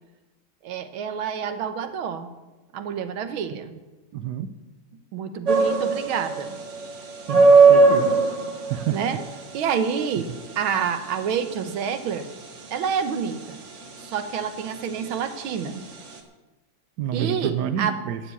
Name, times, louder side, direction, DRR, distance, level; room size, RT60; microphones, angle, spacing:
voice 1, 0.6-2.3 2.7-3.7 5.1-6.6 8.9-9.2 9.5-12.3 12.7-13.6 14.0-15.8 17.1-18.0, right 7 dB, 85° right, 9 dB, 1.8 m, -28 dB
voice 2, 4.1-4.5 7.3-8.1 8.7-9.0 17.0-18.2, right 9 dB, 65° right, 10 dB, 1.1 m, -28 dB
sound 1, 5.5-16.2, right 4 dB, 40° right, 1.4 m, -21 dB
12.5 x 7.2 x 8.4 m, 1.1 s
omnidirectional pair, 2.2 m